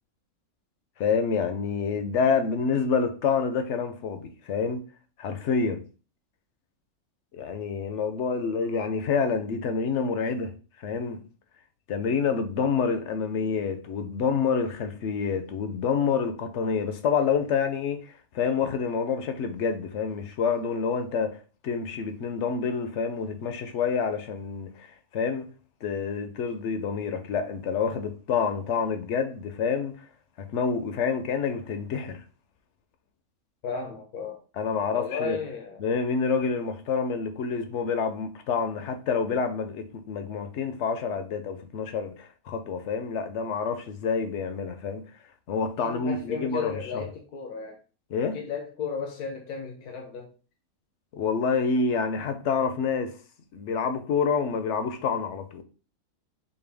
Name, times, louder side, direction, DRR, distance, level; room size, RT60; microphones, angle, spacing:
voice 1, 1.0-4.8 5.2-5.8 7.3-10.5 10.8-11.2 11.9-21.4 21.6-25.5 25.8-30.1 30.5-32.2 34.6-35.4 35.8-45.0 45.5-46.7 48.1-48.4 51.1-53.2 53.5-55.6, left 5 dB, 65° left, 0.8 m, -27 dB
voice 2, 33.6-34.4 34.9-35.8 45.8-47.8 48.3-50.3, left 5 dB, 85° left, 1.3 m, -34 dB
5.2 x 2.2 x 3.3 m
omnidirectional pair, 1.6 m